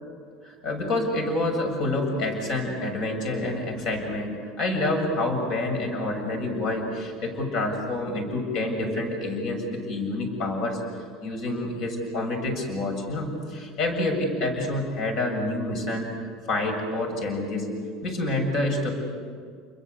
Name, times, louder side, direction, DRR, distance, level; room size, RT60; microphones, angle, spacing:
voice 1, 0.4-10.8 11.2-17.7 18.0-18.9, left 2 dB, 50° left, 3 dB, 7.1 m, -28 dB
29.0 x 22.0 x 8.2 m, 2.1 s
cardioid pair, 145°, 0 cm